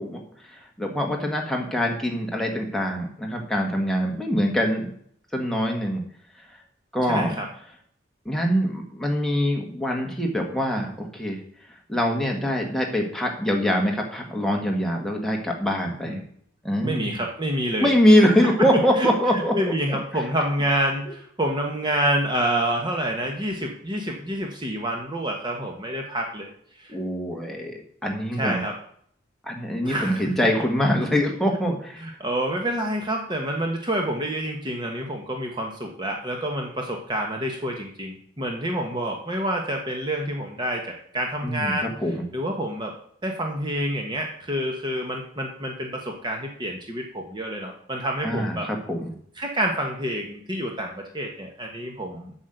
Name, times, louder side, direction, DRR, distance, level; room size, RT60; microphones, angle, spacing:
voice 1, 0.0-4.9 5.3-6.0 6.5-6.6 6.9-7.4 8.2-11.4 11.9-16.2 16.6-17.2 17.8-19.5 19.9-20.0 26.9-28.6 29.4-32.0 41.4-41.7 42.0-42.2 48.2-49.1, equal, ahead, 0 dB, 1.6 m, -24 dB
voice 2, 7.0-7.5 16.1-16.2 16.8-18.7 19.0-27.0 28.3-28.7 29.8-30.2 32.0-41.9 42.3-42.9 43.2-48.7 49.4-52.3, right 1 dB, 20° right, 1 dB, 1.1 m, -28 dB
7.9 x 6.3 x 7.9 m, 0.63 s
head